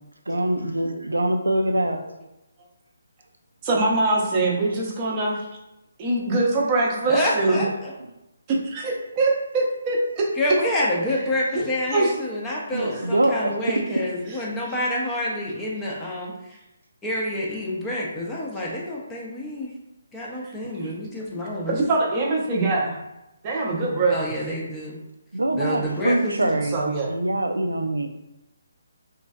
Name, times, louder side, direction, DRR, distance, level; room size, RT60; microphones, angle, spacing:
voice 1, 0.3-2.0 4.6-4.7 7.5-7.7 12.7-14.0 20.6-21.0 25.3-28.1, right 1 dB, 85° right, 5 dB, 0.3 m, -24 dB
voice 2, 3.6-5.5 6.0-7.6 8.5-10.3 11.5-11.6 11.9-12.1 20.8-20.9 21.7-23.0 23.4-24.4 26.7-27.1, right 2 dB, 25° right, -3 dB, 0.7 m, -23 dB
voice 3, 7.1-7.9 10.4-16.5 17.0-19.7 20.1-21.8 24.1-24.9 25.5-26.5, left 1 dB, 10° left, -5 dB, 0.6 m, -28 dB
3.1 x 2.6 x 2.3 m, 0.92 s
figure-of-eight pair, 145°, 0 cm